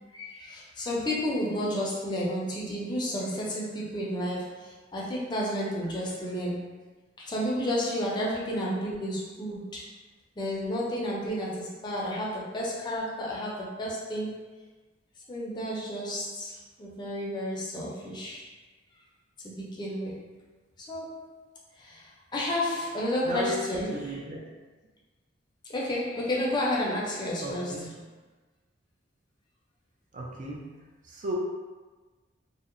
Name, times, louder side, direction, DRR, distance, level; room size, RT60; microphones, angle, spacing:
voice 1, 0.1-6.7 7.2-9.9 10.4-14.4 15.3-18.5 19.4-20.3 20.8-21.4 21.8-24.2 25.7-27.9, left 1 dB, 25° left, -4 dB, 0.4 m, -31 dB
voice 2, 23.2-24.4 27.4-28.0 30.1-30.7 31.0-31.3, equal, 45° right, -2 dB, 0.4 m, -35 dB
2.7 x 2.0 x 2.5 m, 1.3 s
head